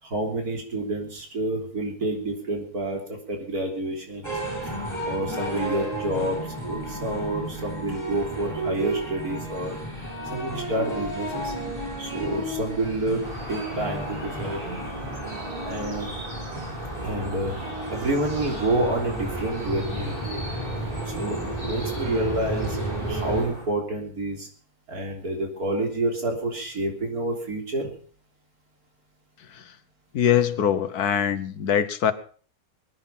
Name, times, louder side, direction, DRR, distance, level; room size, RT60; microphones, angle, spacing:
voice 1, 0.0-4.3 4.6-4.7 5.0-9.8 10.2-11.5 12.0-14.6 15.6-16.1 17.0-17.6 17.9-20.5 21.1-22.8 23.1-24.5 24.9-27.9, right 1 dB, 80° right, 2 dB, 3.9 m, -28 dB
sound 1, 4.2-23.4, right 1 dB, 10° right, 7.8 m, -32 dB
sound 2, 13.2-23.7, right 1 dB, 35° right, 5.0 m, -38 dB
voice 2, 30.1-32.1, left 9 dB, 85° left, 13 dB, 1.6 m, -23 dB
22.0 x 9.9 x 5.6 m, 0.43 s
omnidirectional pair, 1.6 m